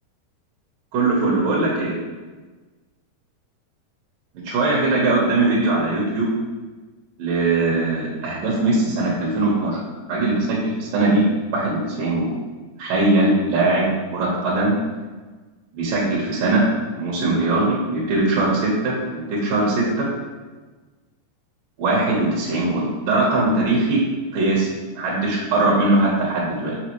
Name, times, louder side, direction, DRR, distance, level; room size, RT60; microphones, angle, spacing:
voice 1, 0.9-2.0 4.3-6.3 7.2-9.8 10.1-11.3 11.5-12.4 12.8-14.8 15.7-16.6 17.0-20.1 21.8-24.0 24.3-24.7 25.0-26.8, right 2 dB, 65° right, -5 dB, 2.5 m, -20 dB
6.1 x 6.1 x 3.1 m, 1.3 s
omnidirectional pair, 4.7 m